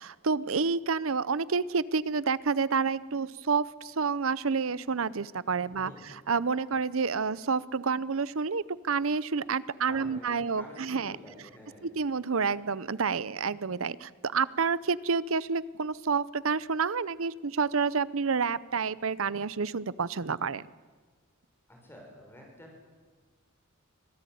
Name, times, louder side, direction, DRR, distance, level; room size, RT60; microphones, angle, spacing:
voice 1, 0.0-5.9 6.3-11.2 11.8-20.6, right 5 dB, 70° right, 19 dB, 0.7 m, -29 dB
voice 2, 5.7-6.1 9.9-11.9 21.7-22.7, left 1 dB, 10° left, 0 dB, 6.7 m, -49 dB
25.5 x 18.0 x 9.4 m, 1.4 s
head